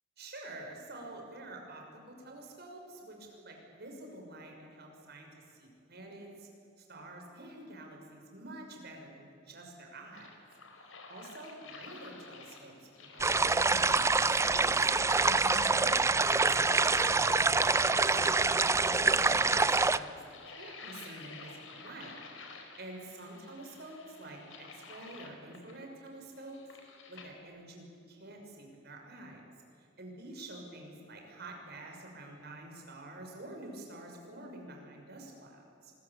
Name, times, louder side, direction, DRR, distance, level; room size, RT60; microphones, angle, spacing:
voice 1, 0.2-6.5 6.8-10.3 10.7-14.9 15.2-20.1 20.5-22.2 22.8-26.6 27.1-29.4 29.7-35.9, right 2 dB, 55° right, 1 dB, 6.1 m, -48 dB
sound 1, 10.1-27.4, left 4 dB, 90° left, 4.2 m, -50 dB
sound 2, 13.2-20.0, right 3 dB, 15° right, 0.5 m, -26 dB
26.0 x 21.5 x 8.6 m, 2.5 s
head